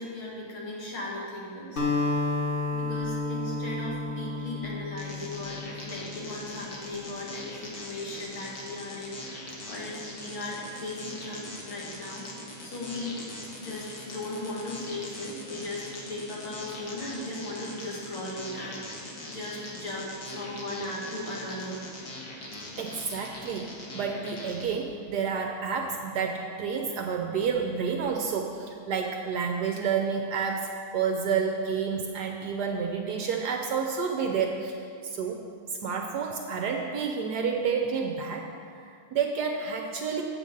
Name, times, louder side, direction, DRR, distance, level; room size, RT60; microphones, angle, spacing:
voice 1, 0.0-2.2 2.7-13.2 13.6-21.8, left 1 dB, 70° left, -5 dB, 2.7 m, -37 dB
Acoustic guitar, 1.8-6.2, left 3 dB, 35° left, 1.0 m, -31 dB
sound 1, 5.0-24.6, left 2 dB, 55° left, 1.9 m, -41 dB
voice 2, 22.8-34.8 35.0-35.4 35.8-38.5 38.8-40.2, right 6 dB, 70° right, 3 dB, 0.9 m, -29 dB
8.9 x 8.1 x 5.2 m, 2.3 s
omnidirectional pair, 2.4 m